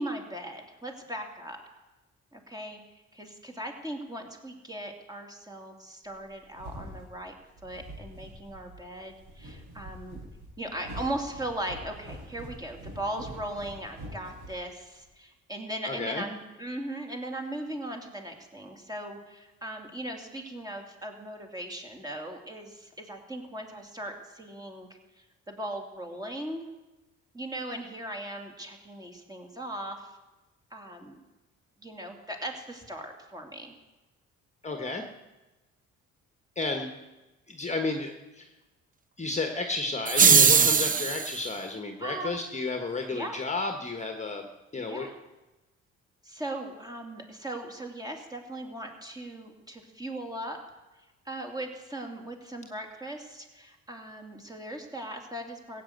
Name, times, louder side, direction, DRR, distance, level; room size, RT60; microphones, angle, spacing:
voice 1, 0.0-1.6 2.3-2.8 3.1-7.3 7.6-10.2 10.6-24.9 25.2-26.7 27.3-30.1 30.7-31.2 31.8-33.7 36.7-36.8 40.5-41.1 42.0-42.4 43.1-43.4 44.8-45.1 46.2-50.6 51.2-55.8, right 1 dB, 10° right, 3 dB, 2.7 m, -38 dB
sound 1, 6.1-15.1, right 1 dB, 90° right, 6.2 m, -45 dB
voice 2, 15.8-16.2 34.6-35.0 36.5-36.9 37.5-38.5 39.2-45.1, left 3 dB, 25° left, 4 dB, 1.4 m, -32 dB
sound 2, 40.1-41.4, right 6 dB, 30° right, 0.6 m, -20 dB
16.0 x 8.4 x 8.0 m, 1.1 s
cardioid pair, 90°, 30 cm